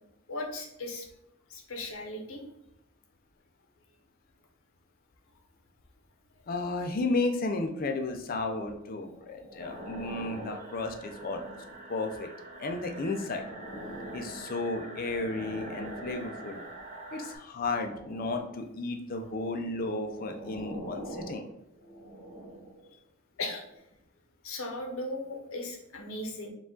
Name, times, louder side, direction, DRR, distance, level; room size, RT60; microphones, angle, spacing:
voice 1, 0.3-1.1 1.5-2.4 23.4-23.6 24.4-26.5, left 2 dB, 80° left, 3 dB, 0.8 m, -37 dB
voice 2, 6.5-11.6 11.9-12.3 12.6-13.4 14.1-16.6 17.1-21.4, left 2 dB, 45° left, 5 dB, 0.5 m, -33 dB
sound 1, 8.9-12.0 12.6-16.9 17.6-18.7 19.6-22.9 23.6-23.8, equal, 60° left, 1.3 m, -45 dB
sound 2, 9.6-17.4, right 2 dB, 35° right, 0.6 m, -46 dB
4.7 x 2.4 x 3.7 m, 0.81 s
head